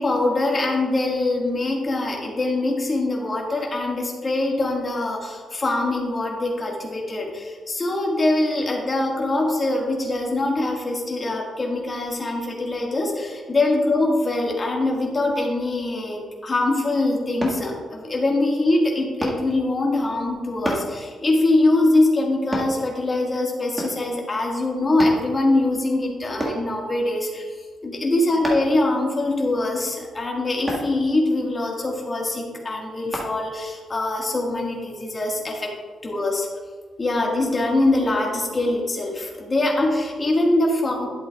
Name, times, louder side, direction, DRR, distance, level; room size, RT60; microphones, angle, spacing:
voice 1, 0.0-27.4 27.8-35.7 36.0-36.5 37.0-41.1, left 2 dB, 25° left, -1 dB, 1.7 m, -23 dB
sound 1, 17.4-17.6 19.2-19.4 20.6-20.9 22.5-22.7 23.8-24.1 25.0-25.2 26.4-26.6 28.4-28.8 30.7-30.9 33.1-33.3 33.9-34.0, right 1 dB, 15° right, 1.6 m, -28 dB
11.5 x 7.7 x 2.3 m, 1.5 s
cardioid pair, 135°, 0 cm